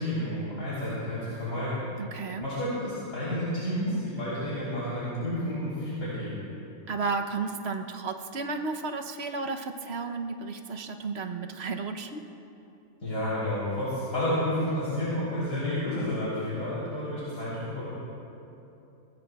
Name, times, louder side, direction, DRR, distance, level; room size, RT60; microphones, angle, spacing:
voice 1, 0.0-1.8 2.4-6.4 13.0-17.9, left 1 dB, 85° left, -11 dB, 4.0 m, -30 dB
voice 2, 2.0-2.5 6.9-12.2, right 4 dB, 55° right, 5 dB, 1.0 m, -33 dB
21.5 x 19.0 x 2.3 m, 2.9 s
omnidirectional pair, 1.4 m